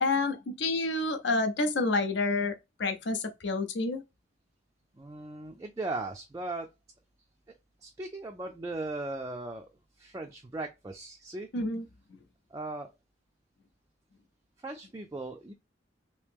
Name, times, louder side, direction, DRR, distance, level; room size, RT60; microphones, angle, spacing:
voice 1, 0.0-4.0 11.5-11.8, left 3 dB, 65° left, 0.6 m, -29 dB
voice 2, 5.0-6.7 7.8-9.7 10.0-11.5 12.5-12.9 14.6-15.5, right 2 dB, 15° right, 0.3 m, -38 dB
2.9 x 2.8 x 3.5 m
head